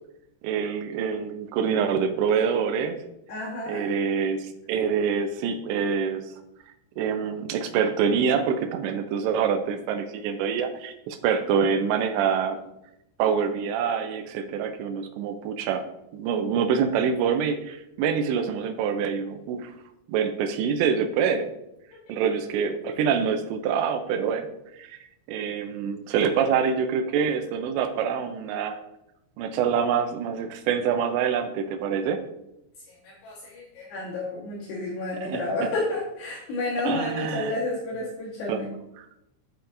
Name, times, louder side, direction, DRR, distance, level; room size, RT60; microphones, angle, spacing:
voice 1, 0.4-3.0 3.7-6.2 7.0-12.6 13.2-15.9 16.1-19.7 20.1-21.5 22.1-24.5 24.8-25.0 25.3-28.8 29.4-32.2 35.2-35.4 36.9-37.6 38.5-38.6 39.0-39.1, right 7 dB, 80° right, 7 dB, 2.8 m, -26 dB
voice 2, 3.3-3.8 33.0-38.7, left 2 dB, 70° left, -6 dB, 3.3 m, -30 dB
8.3 x 8.0 x 2.6 m, 0.86 s
omnidirectional pair, 5.4 m